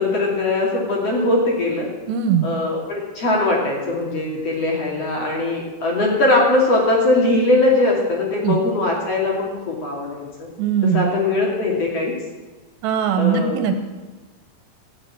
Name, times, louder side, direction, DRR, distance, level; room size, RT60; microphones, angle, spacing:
voice 1, 0.0-1.9 2.4-10.5 10.9-12.1 13.2-13.8, left 2 dB, 40° left, -2 dB, 3.2 m, -20 dB
voice 2, 2.1-2.5 8.4-8.6 10.6-11.1 12.8-13.7, right 8 dB, 85° right, 7 dB, 3.3 m, -20 dB
17.0 x 7.1 x 8.8 m, 1.3 s
omnidirectional pair, 4.9 m